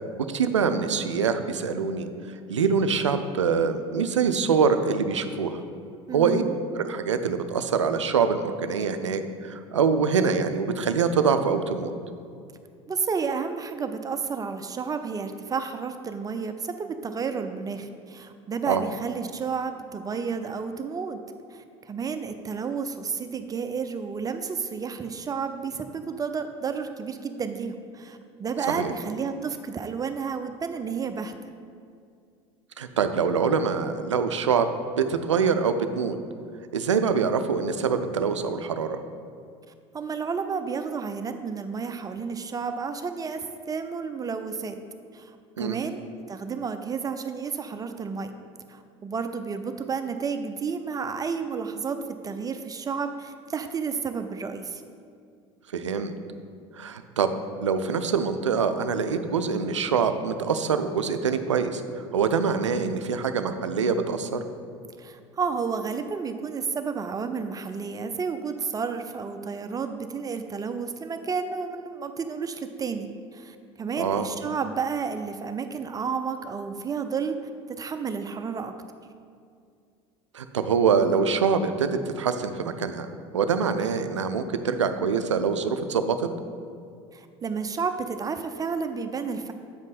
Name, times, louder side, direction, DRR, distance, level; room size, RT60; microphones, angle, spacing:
voice 1, 0.3-2.1 2.5-5.6 6.1-6.4 6.7-11.9 18.7-18.8 28.7-28.9 32.8-34.7 35.0-36.2 36.7-39.0 45.6-45.8 55.7-56.1 56.8-57.3 57.6-64.4 74.0-74.3 80.3-86.3, right 6 dB, 90° right, 9 dB, 0.4 m, -24 dB
voice 2, 6.1-6.5 12.9-21.2 21.5-31.3 39.9-44.8 45.1-46.0 46.3-48.3 48.7-52.0 52.2-54.8 65.0-77.4 77.8-78.7 87.1-89.5, right 5 dB, 25° right, 8 dB, 0.5 m, -31 dB
8.2 x 5.2 x 4.1 m, 2.3 s
hypercardioid pair, 70°, 15 cm